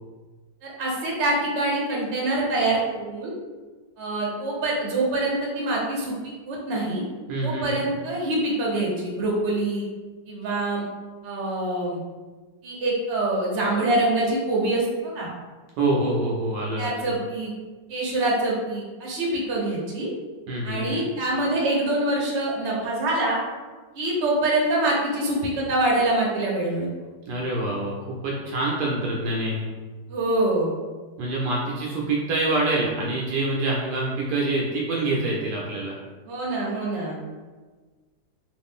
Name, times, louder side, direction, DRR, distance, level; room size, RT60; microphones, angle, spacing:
voice 1, 0.6-3.3 4.0-7.0 7.4-9.8 10.3-10.8 11.2-12.0 12.6-15.3 16.8-17.5 17.9-20.1 20.6-23.4 23.9-26.9 30.1-30.7 36.3-37.2, right 2 dB, 50° right, -3 dB, 0.9 m, -25 dB
voice 2, 7.3-7.9 15.8-16.9 20.5-21.0 27.3-29.7 31.2-35.9, right 2 dB, 70° right, -3 dB, 1.1 m, -26 dB
3.1 x 2.5 x 3.6 m, 1.3 s
omnidirectional pair, 1.9 m